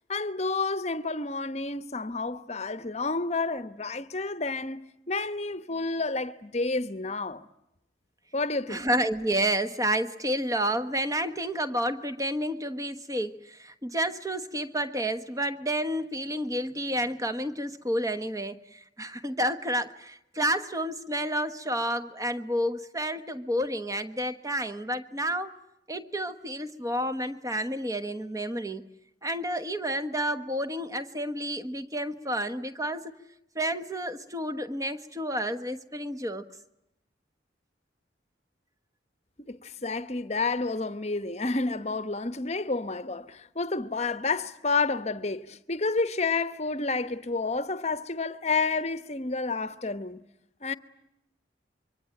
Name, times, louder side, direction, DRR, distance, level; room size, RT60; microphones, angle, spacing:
voice 1, 0.1-7.4 8.3-8.9 39.4-50.2 50.6-50.7, left 3 dB, 35° left, 1.0 m, -30 dB
voice 2, 8.7-25.5 25.9-28.9 29.2-33.1 33.5-36.5, right 1 dB, 20° right, 1.2 m, -30 dB
25.5 x 24.0 x 9.1 m
head